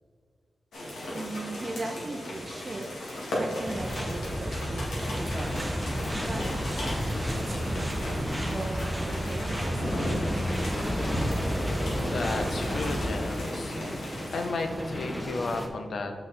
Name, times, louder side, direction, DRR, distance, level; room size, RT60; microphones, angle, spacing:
sound 1, 0.7-14.5, left 1 dB, 90° left, 1.8 m, -35 dB
voice 1, 1.1-3.1 3.4-7.0 7.3-10.5, right 2 dB, 45° right, 4 dB, 0.6 m, -39 dB
sound 2, 3.6-13.1, equal, 15° right, 1.0 m, -32 dB
sound 3, 5.1-15.7, equal, 15° left, 1.2 m, -36 dB
voice 2, 12.1-13.7 14.3-16.1, left 3 dB, 75° left, 5 dB, 0.8 m, -33 dB
6.4 x 5.8 x 4.1 m, 2.1 s
cardioid pair, 60°, 0 cm